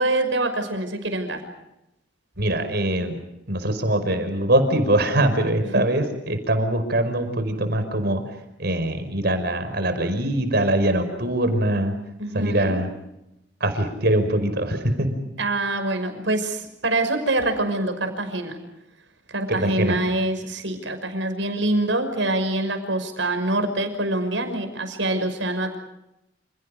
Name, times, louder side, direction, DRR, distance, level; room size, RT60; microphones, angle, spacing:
voice 1, 0.0-1.4 5.6-5.9 12.2-12.8 15.4-18.6 19.3-25.8, right 2 dB, 90° right, 8 dB, 5.9 m, -25 dB
voice 2, 2.4-3.2 3.5-8.2 8.6-11.9 12.3-12.9 13.6-15.2 19.5-20.0, right 1 dB, 60° right, 8 dB, 5.4 m, -22 dB
29.5 x 29.5 x 5.1 m, 0.88 s
head